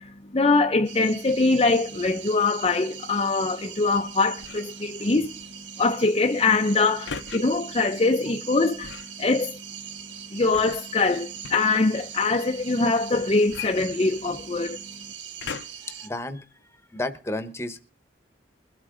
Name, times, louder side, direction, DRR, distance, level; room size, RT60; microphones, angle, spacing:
voice 1, 0.0-5.3 5.8-9.6 10.3-14.8, left 3 dB, 30° left, 0.5 m, -23 dB
sound 1, 0.8-16.1, right 9 dB, 80° right, 1.0 m, -41 dB
sound 2, 4.4-4.8 7.1-7.4 8.8-9.2 10.5-11.8 13.5-14.5 15.4-15.9 16.6-16.7, left 6 dB, 75° left, 0.7 m, -37 dB
voice 2, 15.8-16.5 16.9-17.8, left 2 dB, 15° left, 1.0 m, -32 dB
22.0 x 8.3 x 3.8 m
head